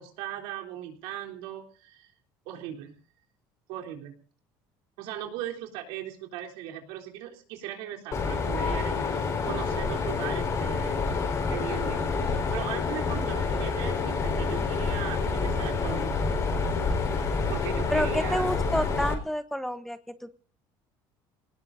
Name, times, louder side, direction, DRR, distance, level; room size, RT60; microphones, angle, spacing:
voice 1, 0.0-2.1 2.5-3.0 3.7-4.2 5.0-11.1 11.5-16.3 17.5-18.5, right 11 dB, 85° right, 1 dB, 3.7 m, -38 dB
Mechanisms, 8.1-19.1, left 4 dB, 35° left, 4.5 m, -28 dB
voice 2, 17.9-20.3, equal, 5° left, 11 dB, 1.0 m, -29 dB
27.5 x 19.0 x 2.7 m, 0.41 s
cardioid pair, 125°, 9 cm